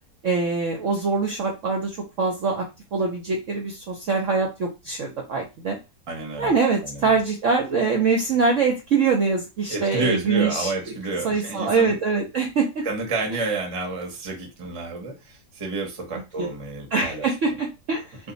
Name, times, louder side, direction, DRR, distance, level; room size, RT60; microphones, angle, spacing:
voice 1, 0.2-2.7 2.9-5.8 6.4-10.7 11.2-12.8 16.1-16.5 16.9-18.2, right 4 dB, 60° right, 1 dB, 0.8 m, -23 dB
voice 2, 6.1-6.5 6.8-7.1 9.7-12.0 12.8-17.3, right 3 dB, 30° right, 2 dB, 0.7 m, -30 dB
2.6 x 2.5 x 3.9 m, 0.26 s
omnidirectional pair, 1.9 m